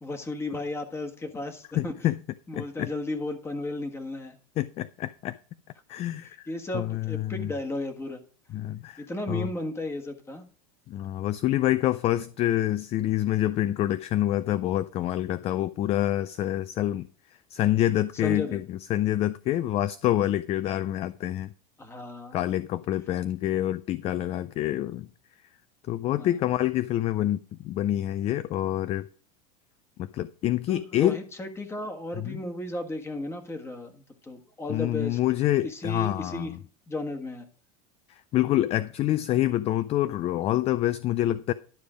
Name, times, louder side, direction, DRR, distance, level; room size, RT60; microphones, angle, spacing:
voice 1, 0.0-2.1 2.5-4.4 6.2-8.2 9.0-10.5 18.2-18.6 21.8-22.4 26.2-26.3 30.7-35.2 35.6-36.5 36.9-37.5, left 2 dB, 15° left, 1.5 m, -34 dB
voice 2, 1.8-2.2 2.5-2.9 4.6-5.4 5.9-6.5 6.7-7.5 8.5-9.5 10.9-17.1 17.5-21.5 22.3-25.1 25.9-29.1 30.0-31.2 32.2-32.4 34.7-36.6 38.1-41.5, left 13 dB, 35° left, 0.4 m, -27 dB
11.5 x 5.1 x 4.9 m
supercardioid pair, 125°, 18 cm